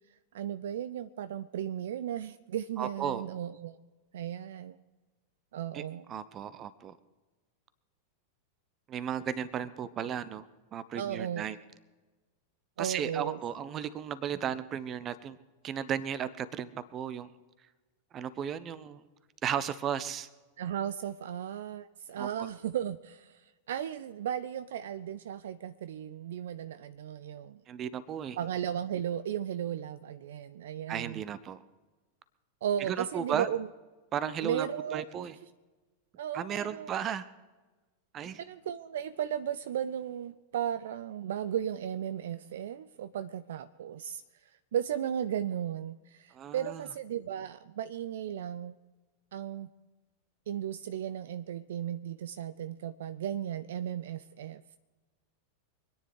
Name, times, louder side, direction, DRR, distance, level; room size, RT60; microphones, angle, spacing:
voice 1, 0.3-3.8 4.1-4.8 5.5-6.1 11.0-11.5 12.8-13.4 20.6-27.6 28.4-31.2 32.6-33.7 34.4-35.1 36.2-37.0 38.4-48.8 49.3-49.7 50.5-54.8, right 10 dB, 60° right, 13 dB, 0.5 m, -35 dB
voice 2, 2.8-3.2 5.7-5.8 6.1-7.0 8.9-10.4 10.7-11.6 12.8-15.4 15.6-17.3 18.1-19.0 19.4-20.3 22.2-22.3 27.7-28.4 30.9-31.6 32.9-33.5 34.1-35.4 36.3-37.3 38.1-38.4 46.3-46.8, right 8 dB, 30° right, 16 dB, 0.9 m, -35 dB
25.0 x 10.0 x 4.8 m, 1.2 s
figure-of-eight pair, 90°, 0 cm